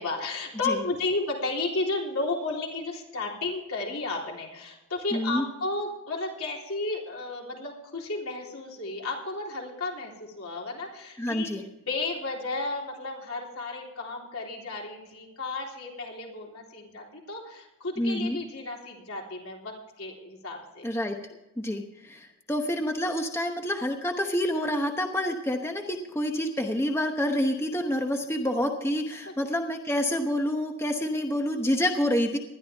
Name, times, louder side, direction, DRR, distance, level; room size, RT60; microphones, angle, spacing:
voice 1, 0.0-11.5 11.8-20.9, left 3 dB, 75° left, -1 dB, 3.6 m, -33 dB
voice 2, 5.1-5.5 11.2-11.6 18.0-18.4 20.8-21.2 21.6-32.4, left 1 dB, 10° left, 4 dB, 0.9 m, -28 dB
19.5 x 12.5 x 3.5 m, 1.0 s
head